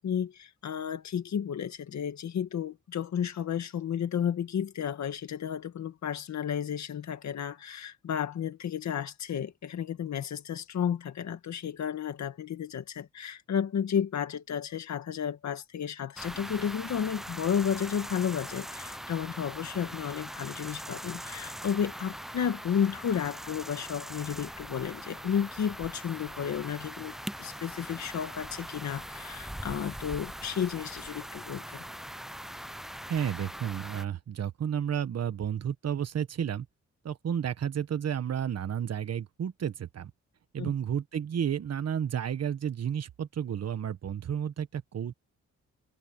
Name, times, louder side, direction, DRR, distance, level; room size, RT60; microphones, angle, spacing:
voice 1, 0.0-31.8 40.6-40.7, left 8 dB, 70° left, 1.8 m, -32 dB
sound 1, 16.2-34.0, equal, ahead, 0.6 m, -41 dB
voice 2, 33.1-36.7 37.0-40.1 40.5-45.1, right 8 dB, 60° right, 1.3 m, -32 dB
cardioid pair, 90°, 29 cm